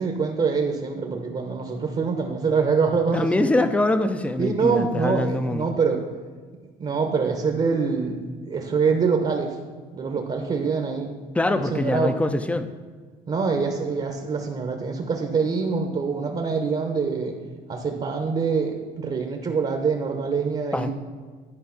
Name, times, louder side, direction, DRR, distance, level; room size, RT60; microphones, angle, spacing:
voice 1, 0.0-3.5 4.4-6.0 6.8-9.6 9.9-11.1 11.5-12.2 13.3-17.4 17.7-20.9, right 5 dB, 35° right, 3 dB, 1.1 m, -25 dB
voice 2, 3.1-5.7 11.3-12.7 20.7-20.9, left 2 dB, 5° left, 9 dB, 0.6 m, -23 dB
11.0 x 4.7 x 5.9 m, 1.5 s
cardioid pair, 110°, 17 cm